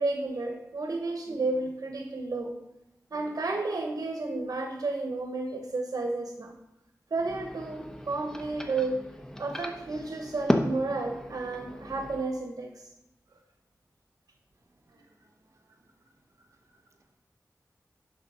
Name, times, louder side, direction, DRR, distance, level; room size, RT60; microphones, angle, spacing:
voice 1, 0.0-2.6 3.1-6.6 7.1-9.1 9.4-12.7, right 3 dB, 80° right, 3 dB, 0.9 m, -32 dB
sound 1, 7.1-12.2, equal, 10° left, 0.9 m, -34 dB
voice 2, 14.6-15.9 16.9-17.2, right 2 dB, 55° right, 3 dB, 1.2 m, -67 dB
10.5 x 4.2 x 5.5 m, 0.89 s
wide cardioid pair, 85°, 6 cm